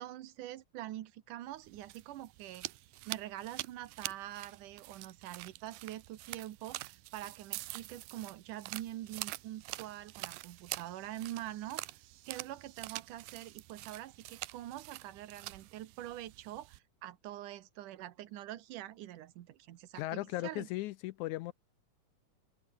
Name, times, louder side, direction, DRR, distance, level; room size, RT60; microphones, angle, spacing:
voice 1, 0.0-11.8 12.3-20.7, right 13 dB, 70° right, 2.6 m, -45 dB
sound 1, 1.6-16.8, right 19 dB, 90° right, 2.4 m, -46 dB
voice 2, 20.0-21.5, left 17 dB, 85° left, 1.8 m, -37 dB
omnidirectional pair, 3.9 m